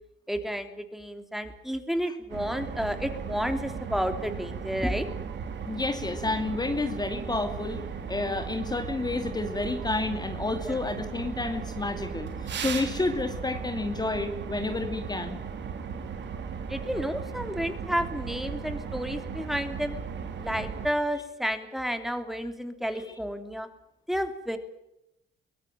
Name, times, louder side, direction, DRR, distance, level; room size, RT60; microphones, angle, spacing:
voice 1, 0.3-5.1 10.6-10.8 16.7-20.0 20.4-23.7 24.1-24.6, equal, ahead, 8 dB, 3.1 m, -31 dB
sound 1, 2.3-20.9, right 6 dB, 65° right, 3.4 m, -37 dB
voice 2, 5.7-7.8 8.1-15.4 22.9-23.1, left 2 dB, 20° left, 6 dB, 2.5 m, -30 dB
23.5 x 17.0 x 9.1 m, 0.85 s
cardioid pair, 90°, 20 cm